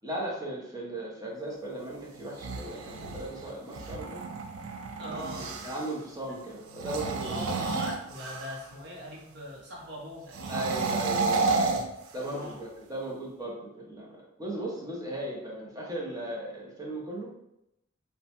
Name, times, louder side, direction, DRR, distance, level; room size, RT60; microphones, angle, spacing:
voice 1, 0.0-4.2 5.0-7.6 10.5-11.5 12.1-17.3, right 1 dB, 15° right, -3 dB, 0.6 m, -37 dB
sound 1, 2.2-5.9 6.7-8.7 10.3-12.6, right 3 dB, 80° right, 0.4 m, -31 dB
voice 2, 5.0-5.6 7.2-10.7 12.2-12.6, equal, 55° right, -3 dB, 0.8 m, -41 dB
3.0 x 2.2 x 2.8 m, 0.83 s
head